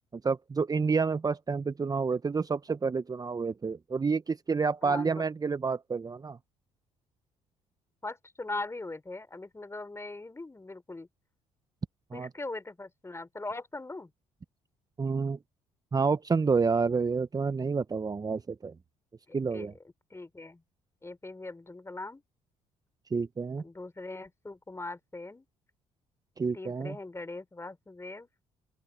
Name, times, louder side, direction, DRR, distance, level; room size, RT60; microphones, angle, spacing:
voice 1, 0.1-6.4 12.1-12.3 15.0-15.4 15.9-18.7 19.3-19.7 23.1-23.6 26.4-27.0, right 5 dB, 25° right, 0.9 m, -29 dB
voice 2, 4.8-5.2 8.0-11.1 12.1-14.1 19.3-19.7 20.1-20.6 21.0-22.2 23.6-25.5 26.5-28.3, left 2 dB, 20° left, 5.3 m, -40 dB
open air
hypercardioid pair, 55°, 14 cm